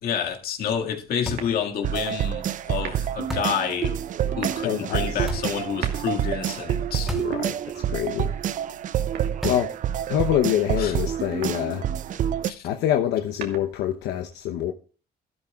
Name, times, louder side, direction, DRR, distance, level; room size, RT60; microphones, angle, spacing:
voice 1, 0.0-4.0 4.3-7.1 10.8-10.9 12.5-12.7, left 7 dB, 65° left, 2.0 m, -29 dB
sound 1, 1.3-1.6 3.3-3.7 5.3-5.6 7.1-7.4 7.7-7.8 9.4-9.8, left 1 dB, ahead, 3.0 m, -33 dB
sound 2, 1.4-1.9 2.7-3.3 4.2-4.7 5.6-6.4 7.2-8.1 9.1-9.8 11.2-11.8 13.1-14.0, right 7 dB, 70° right, 2.5 m, -40 dB
sound 3, 1.8-12.5, right 10 dB, 50° right, 0.6 m, -28 dB
voice 2, 4.6-5.3 7.2-8.4 9.4-9.7 10.1-11.9 12.6-14.7, left 11 dB, 80° left, 0.9 m, -26 dB
13.0 x 12.0 x 2.4 m
cardioid pair, 110°, 17 cm